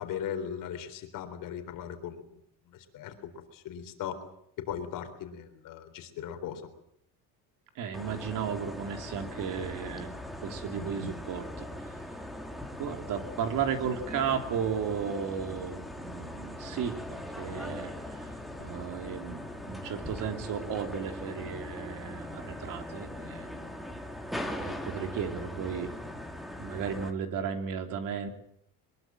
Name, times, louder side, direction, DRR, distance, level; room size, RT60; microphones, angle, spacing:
voice 1, 0.0-2.4 2.7-4.2 4.6-6.6, left 8 dB, 55° left, 7 dB, 4.0 m, -38 dB
voice 2, 7.7-10.1 10.4-12.0 12.8-23.8 24.6-25.9 26.6-28.3, right 7 dB, 55° right, 6 dB, 3.2 m, -35 dB
sound 1, 7.9-27.1, left 1 dB, ahead, 2.3 m, -40 dB
23.5 x 21.5 x 7.7 m, 0.73 s
cardioid pair, 165°, 39 cm